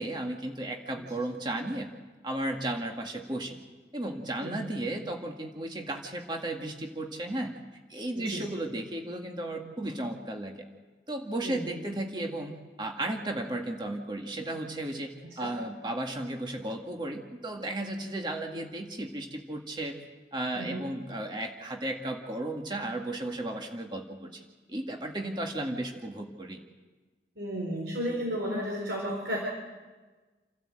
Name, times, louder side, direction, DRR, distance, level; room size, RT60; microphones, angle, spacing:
voice 1, 0.0-1.9 2.2-3.6 3.9-7.6 7.9-10.6 11.1-12.5 12.8-20.0 20.3-24.3 24.7-26.6, right 1 dB, 25° right, 2 dB, 1.9 m, -34 dB
voice 2, 11.4-11.8 15.4-15.5 20.5-20.8 27.4-29.4, equal, 80° right, -2 dB, 4.3 m, -33 dB
29.0 x 12.5 x 7.7 m, 1.3 s
head